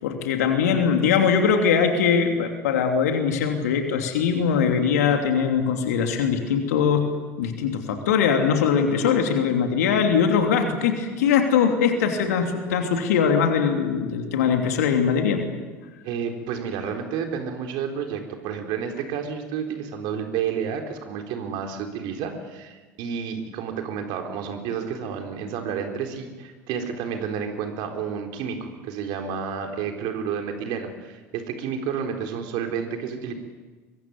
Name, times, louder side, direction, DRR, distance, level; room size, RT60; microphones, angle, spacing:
voice 1, 0.0-7.1 7.4-15.4, left 6 dB, 75° left, 4 dB, 3.1 m, -21 dB
voice 2, 16.0-33.3, right 7 dB, 60° right, 4 dB, 4.0 m, -30 dB
23.5 x 23.0 x 9.6 m, 1.3 s
figure-of-eight pair, 65°, 9 cm